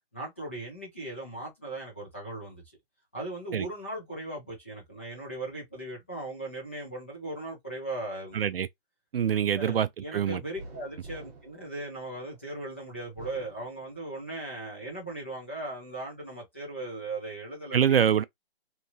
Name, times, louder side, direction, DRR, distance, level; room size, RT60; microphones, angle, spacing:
voice 1, 0.1-2.6 3.1-8.4 9.5-18.0, right 2 dB, 10° left, 0.5 m, -38 dB
voice 2, 8.3-8.7 9.1-10.4 17.7-18.2, right 8 dB, 60° right, 0.5 m, -25 dB
sound 1, 10.5-12.5 13.0-14.3 14.8-15.7, right 2 dB, 10° right, 1.2 m, -48 dB
2.9 x 2.3 x 2.7 m
hypercardioid pair, 165°, 32 cm